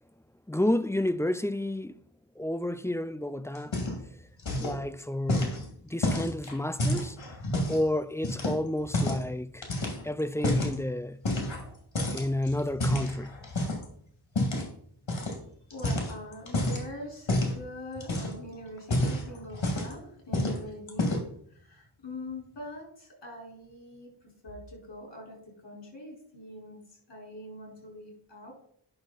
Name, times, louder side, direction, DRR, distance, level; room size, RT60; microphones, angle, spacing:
voice 1, 0.5-2.0 2.4-3.8 4.6-7.2 7.7-9.7 10.0-11.2 12.1-13.3, left 1 dB, 5° left, 0.4 m, -31 dB
sound 1, 3.5-4.1 4.4-4.8 5.3-7.8 8.2-9.3 9.6-10.8 11.2-11.7 11.9-13.8 14.3-14.7 15.1-15.4 15.7-16.8 17.3-17.6 18.0-18.4 18.8-20.0 20.3-20.6 20.9-21.4, left 1 dB, 80° left, 2.3 m, -29 dB
voice 2, 15.7-28.5, left 1 dB, 65° left, 4.4 m, -43 dB
9.8 x 6.4 x 4.0 m
wide cardioid pair, 45°, 45 cm